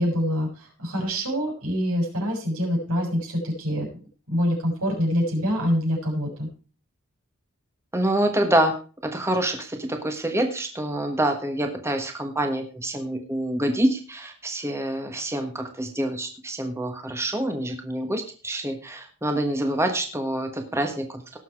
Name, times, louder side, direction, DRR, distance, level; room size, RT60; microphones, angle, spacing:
voice 1, 0.0-3.9 4.3-6.5, equal, 85° right, -1 dB, 6.8 m, -25 dB
voice 2, 7.9-8.7 9.0-21.4, right 1 dB, 10° right, 4 dB, 1.3 m, -26 dB
18.0 x 7.1 x 4.7 m, 0.37 s
head